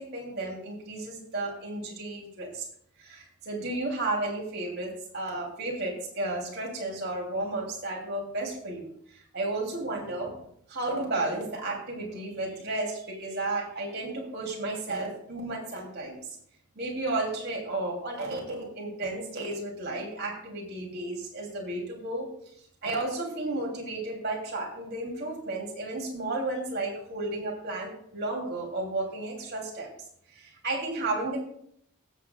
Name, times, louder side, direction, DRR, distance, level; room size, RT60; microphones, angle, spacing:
voice 1, 0.0-2.6 3.0-10.4 10.7-16.2 16.7-22.3 22.8-29.9 30.3-31.4, right 2 dB, 50° right, -2 dB, 2.7 m, -33 dB
21.5 x 7.5 x 2.3 m, 0.68 s
head